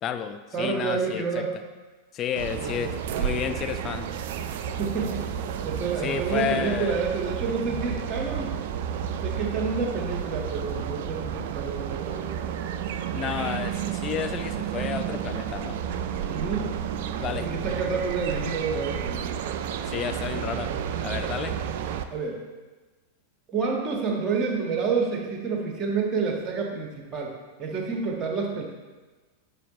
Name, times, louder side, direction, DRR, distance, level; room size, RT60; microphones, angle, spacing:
voice 1, 0.0-1.4 2.1-2.9 3.2-4.1 6.0-7.0 13.1-15.8 17.2-17.5 19.9-20.7 21.0-21.5, left 8 dB, 30° left, 10 dB, 0.4 m, -31 dB
voice 2, 0.5-1.5 2.5-2.9 4.8-5.3 5.6-8.6 9.2-12.3 16.3-16.8 17.4-19.2 22.1-22.4 23.5-27.3 27.6-28.6, right 5 dB, 25° right, 0 dB, 1.5 m, -29 dB
sound 1, 2.4-22.0, right 8 dB, 50° right, 0.4 m, -31 dB
10.0 x 5.5 x 3.1 m, 1.3 s
figure-of-eight pair, 90°, 0 cm